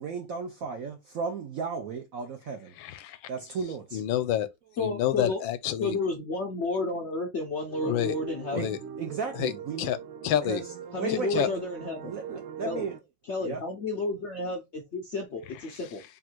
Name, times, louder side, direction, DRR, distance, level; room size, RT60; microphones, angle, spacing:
voice 1, 0.0-2.7 3.3-4.0 8.5-8.7 9.0-9.9 10.5-10.6 11.0-11.5 12.0-12.9 13.4-13.6, right 6 dB, 70° right, 0.8 m, -34 dB
voice 2, 2.8-3.3 3.9-4.5 4.8-6.0 7.8-8.2 8.5-8.8 9.4-9.5 9.8-10.0 10.2-10.6 11.1-11.5 15.7-15.8, left 11 dB, 85° left, 1.3 m, -28 dB
voice 3, 4.8-5.4 5.8-8.8 10.9-12.2 12.6-12.9 13.3-16.0, left 2 dB, 65° left, 0.6 m, -31 dB
sound 1, 7.7-13.0, right 7 dB, 85° right, 1.3 m, -42 dB
3.7 x 2.4 x 4.4 m
omnidirectional pair, 2.1 m